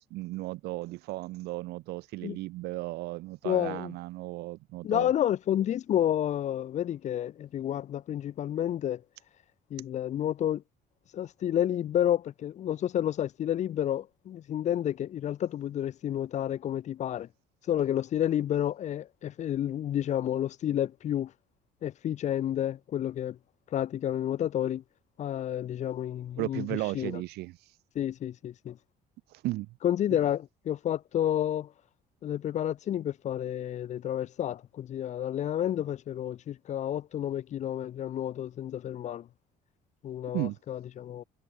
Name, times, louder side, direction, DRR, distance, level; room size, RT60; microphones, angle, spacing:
voice 1, 0.0-5.1 26.4-27.6 29.3-29.7 40.3-40.6, right 19 dB, 85° right, 2.7 m, -35 dB
voice 2, 3.4-3.9 4.8-9.0 9.7-10.6 11.1-17.3 17.7-21.3 21.8-23.4 23.7-24.8 25.2-26.7 26.9-27.2 28.0-28.8 29.8-31.7 32.2-39.3 40.0-41.2, left 11 dB, 45° left, 2.1 m, -30 dB
cardioid pair, 155°, 16 cm